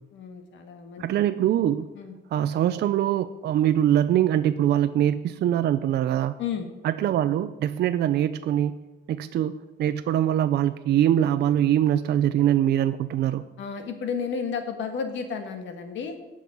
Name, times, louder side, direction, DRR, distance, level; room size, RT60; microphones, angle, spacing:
voice 1, 0.1-1.0 1.9-2.2 6.4-6.7 13.6-16.2, left 6 dB, 90° left, 6 dB, 1.6 m, -32 dB
voice 2, 1.0-1.9 2.3-6.3 6.8-8.8 9.1-13.4, right 11 dB, 65° right, 10 dB, 0.5 m, -23 dB
17.5 x 6.3 x 5.4 m, 1.1 s
cardioid pair, 170°, 19 cm